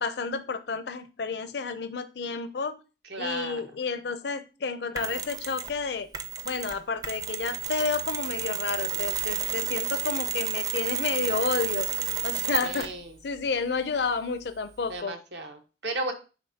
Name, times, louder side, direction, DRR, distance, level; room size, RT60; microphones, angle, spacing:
voice 1, 0.0-2.8 3.2-6.1 6.4-11.9 12.2-12.9 13.2-15.1, left 5 dB, 65° left, 11 dB, 0.5 m, -30 dB
voice 2, 3.1-3.6 12.6-13.1 14.9-16.1, right 2 dB, 70° right, 4 dB, 1.2 m, -34 dB
Mechanisms, 5.0-5.8 6.1-13.0, right 7 dB, 20° right, 0.5 m, -31 dB
10.0 x 3.7 x 2.8 m, 0.32 s
head